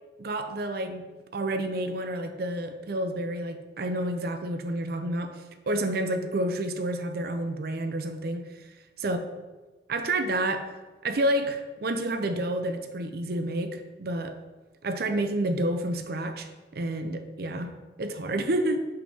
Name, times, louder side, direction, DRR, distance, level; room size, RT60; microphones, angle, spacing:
voice 1, 0.2-1.0 1.3-8.5 9.0-9.2 9.9-10.7 11.0-14.4 14.8-16.5 16.7-18.9, right 1 dB, 55° right, 7 dB, 0.6 m, -29 dB
5.6 x 5.4 x 5.5 m, 1.2 s
head